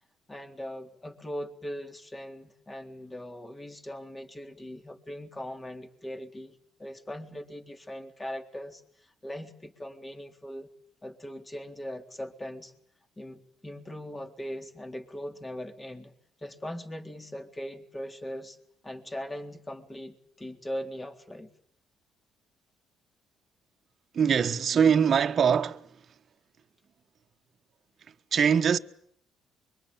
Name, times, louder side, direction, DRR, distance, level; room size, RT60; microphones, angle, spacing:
voice 1, 0.3-10.7 11.0-12.7 13.2-16.1 16.4-18.6 18.8-21.5, equal, 20° left, 3.8 m, -40 dB
voice 2, 24.1-26.0 28.3-28.8, right 7 dB, 50° right, 1.4 m, -23 dB
24.5 x 24.0 x 9.0 m
supercardioid pair, 70°, 0 cm